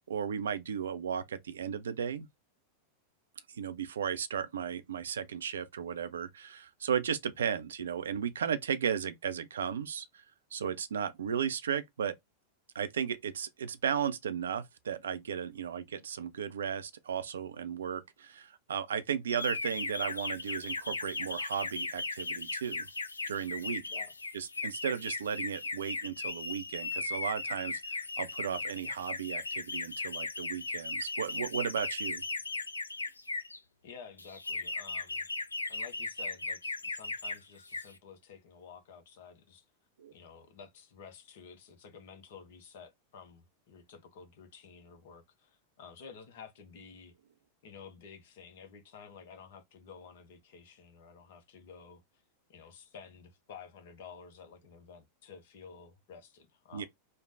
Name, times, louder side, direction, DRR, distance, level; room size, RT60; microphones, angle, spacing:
voice 1, 0.1-2.3 3.5-10.2 10.5-12.1 12.7-22.8 23.3-23.8 24.3-32.2 40.0-40.1 56.7-56.9, right 8 dB, 65° right, 0.4 m, -35 dB
sound 1, 19.3-33.6 34.2-37.4 37.6-38.0, left 3 dB, 80° left, 0.3 m, -37 dB
voice 2, 33.8-35.3 35.7-39.6 40.1-47.1 47.6-52.0 52.5-56.9, left 6 dB, 55° left, 0.7 m, -52 dB
3.2 x 2.1 x 2.5 m
figure-of-eight pair, 90°, 0 cm